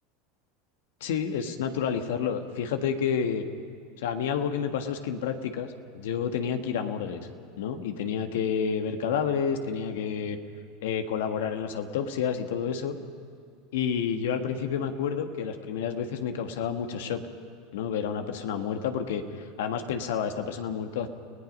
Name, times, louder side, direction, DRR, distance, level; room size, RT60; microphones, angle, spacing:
voice 1, 1.0-3.4 4.0-7.3 7.6-10.4 10.8-13.0 13.7-17.2 17.7-19.2 19.6-21.1, left 7 dB, 75° left, 6 dB, 1.6 m, -29 dB
30.0 x 17.5 x 5.4 m, 2.3 s
hypercardioid pair, 95°, 0 cm